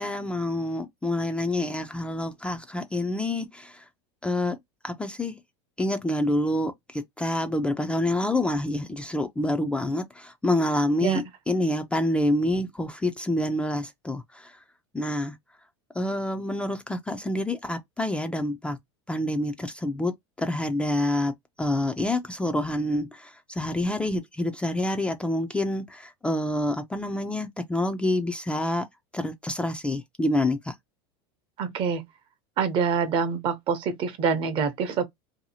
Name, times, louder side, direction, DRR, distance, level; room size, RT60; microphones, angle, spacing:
voice 1, 0.0-3.8 4.2-4.6 4.8-5.4 5.8-14.6 14.9-15.4 16.0-18.8 19.1-20.1 20.4-28.9 29.1-30.7, left 1 dB, 10° left, 0.3 m, -27 dB
voice 2, 31.6-32.0 32.6-35.0, right 6 dB, 40° right, 0.7 m, -26 dB
2.7 x 2.3 x 2.7 m
supercardioid pair, 125°, 13 cm